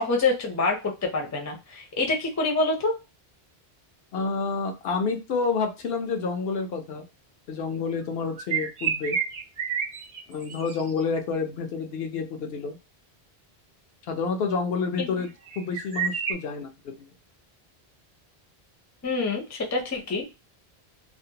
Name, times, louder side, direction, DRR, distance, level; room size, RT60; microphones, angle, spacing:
voice 1, 0.0-3.0 15.0-15.1 19.0-20.2, left 3 dB, 20° left, 1 dB, 0.5 m, -26 dB
voice 2, 4.1-7.0 7.5-9.2 10.3-12.8 14.1-15.3 15.6-16.7, left 4 dB, 75° left, 4 dB, 0.8 m, -29 dB
sound 1, 8.3-11.0 15.2-16.3, right 7 dB, 45° right, 0.6 m, -29 dB
2.5 x 2.1 x 2.7 m, 0.27 s
omnidirectional pair, 1.0 m